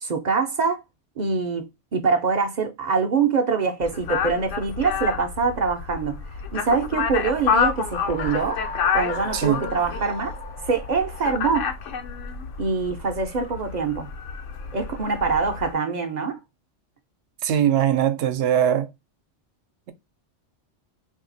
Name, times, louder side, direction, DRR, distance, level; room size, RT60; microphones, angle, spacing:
voice 1, 0.0-0.8 1.2-6.2 6.5-8.6 8.9-10.3 10.6-11.7 12.6-14.1 14.7-16.4, right 5 dB, 55° right, 0.5 m, -24 dB
sound 1, 3.8-15.7, left 6 dB, 90° left, 1.1 m, -29 dB
sound 2, 7.4-12.1, left 4 dB, 55° left, 0.4 m, -37 dB
voice 2, 17.4-18.9, right 10 dB, 75° right, 0.9 m, -21 dB
2.7 x 2.7 x 3.8 m
omnidirectional pair, 1.2 m